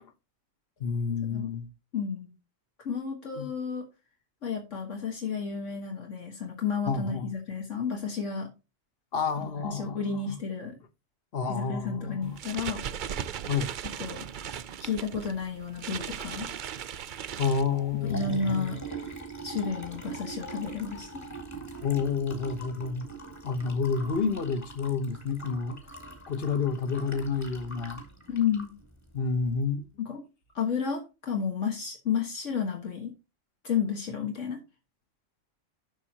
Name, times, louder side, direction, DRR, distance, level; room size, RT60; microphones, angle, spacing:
voice 1, 0.8-1.7 3.4-3.5 6.9-7.3 9.1-10.4 11.3-12.4 13.5-13.7 17.4-18.8 21.8-23.0 23.4-25.8 26.3-28.0 29.1-29.9, left 5 dB, 50° left, 1.3 m, -29 dB
voice 2, 1.9-2.3 2.9-3.9 4.4-8.5 9.6-10.7 11.5-12.8 14.0-14.3 14.8-16.5 18.0-18.8 19.4-21.1 28.3-28.7 30.0-30.2 30.5-33.1 33.6-34.6, left 6 dB, 70° left, 1.9 m, -31 dB
sound 1, 12.2-18.1, right 8 dB, 55° right, 0.5 m, -38 dB
Liquid, 17.7-29.6, right 3 dB, 15° left, 2.5 m, -43 dB
12.0 x 6.5 x 2.9 m
omnidirectional pair, 1.3 m